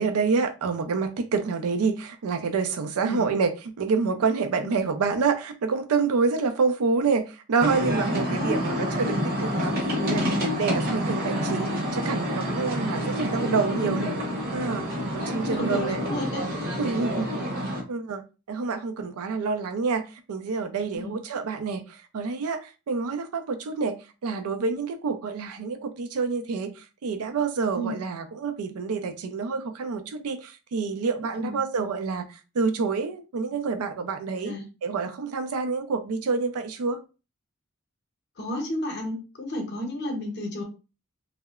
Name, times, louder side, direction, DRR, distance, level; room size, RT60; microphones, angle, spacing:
voice 1, 0.0-14.2 14.5-14.9 15.1-16.0 16.8-17.5 17.9-18.2 18.5-34.5 34.8-37.0, right 4 dB, 85° right, 0.4 m, -27 dB
voice 2, 3.0-3.3 4.6-4.8 8.2-8.6 10.8-11.0 13.1-14.0 15.2-16.4 20.9-21.2 27.7-27.9 31.4-31.6 34.4-34.6 38.4-40.6, left 1 dB, 50° left, 0.7 m, -32 dB
sound 1, 7.6-17.8, equal, 45° right, 0.8 m, -28 dB
2.8 x 2.0 x 2.3 m
head